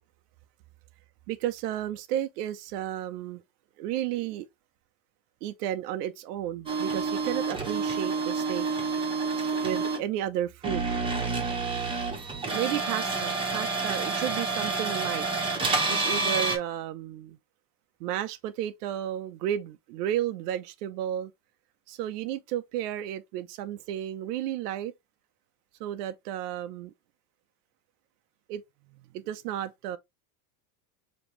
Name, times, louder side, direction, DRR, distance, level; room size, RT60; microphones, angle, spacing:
voice 1, 1.3-3.4 3.8-4.5 5.4-8.7 9.6-10.9 12.5-15.3 15.9-17.4 18.0-21.3 21.9-24.9 25.8-26.9 28.5-28.6 29.1-30.0, right 11 dB, 90° right, 0.7 m, -32 dB
sound 1, 6.7-10.0 10.6-16.6, right 4 dB, 10° right, 1.0 m, -29 dB
5.2 x 3.0 x 3.0 m
supercardioid pair, 160°, 46 cm